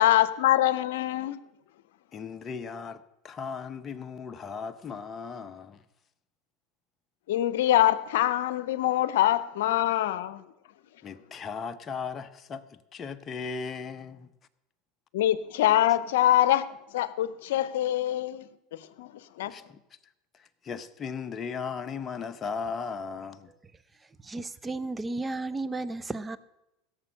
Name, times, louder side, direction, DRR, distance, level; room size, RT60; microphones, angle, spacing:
voice 1, 0.0-1.4 7.3-10.4 15.1-16.7 16.9-18.5 19.0-19.1 19.4-19.5, left 13 dB, 80° left, 0.7 m, -24 dB
voice 2, 2.1-5.8 11.0-14.3 19.4-19.8 20.3-23.5, left 5 dB, 30° left, 0.8 m, -37 dB
voice 3, 24.0-26.4, right 2 dB, 15° right, 0.7 m, -34 dB
16.0 x 7.0 x 6.4 m
hypercardioid pair, 95°, 0 cm